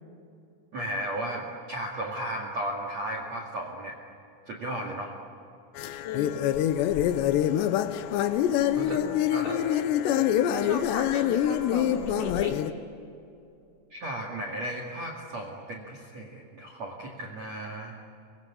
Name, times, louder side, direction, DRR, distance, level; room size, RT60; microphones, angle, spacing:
voice 1, 0.7-4.0 4.5-5.1 8.7-9.0 9.3-9.5 13.9-18.0, right 1 dB, 50° right, 1 dB, 2.3 m, -35 dB
sound 1, 5.8-12.7, left 11 dB, 80° left, 2.7 m, -25 dB
voice 2, 6.0-6.4 8.8-9.2 9.4-10.1 10.5-12.6, left 2 dB, 45° left, 0 dB, 4.3 m, -36 dB
25.0 x 22.5 x 8.7 m, 2.6 s
omnidirectional pair, 5.9 m